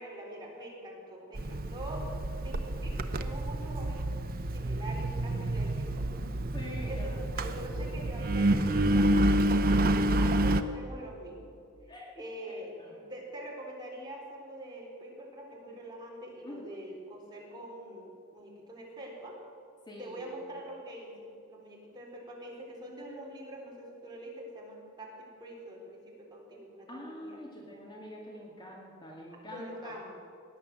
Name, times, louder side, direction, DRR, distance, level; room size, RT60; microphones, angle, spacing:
voice 1, 0.0-2.1 2.4-4.1 4.5-6.1 6.4-6.6 6.9-11.5 12.2-12.7 13.1-19.3 20.0-27.5 29.5-30.2, right 1 dB, 20° right, -3 dB, 3.6 m, -44 dB
Engine, 1.4-10.6, right 1 dB, 45° right, 0.7 m, -28 dB
voice 2, 6.4-7.6 9.3-9.4 9.9-10.0 11.9-12.1 12.5-13.0 16.5-16.8 19.9-20.4 26.9-30.0, equal, 20° left, -2 dB, 2.0 m, -46 dB
17.5 x 10.5 x 7.4 m, 2.5 s
head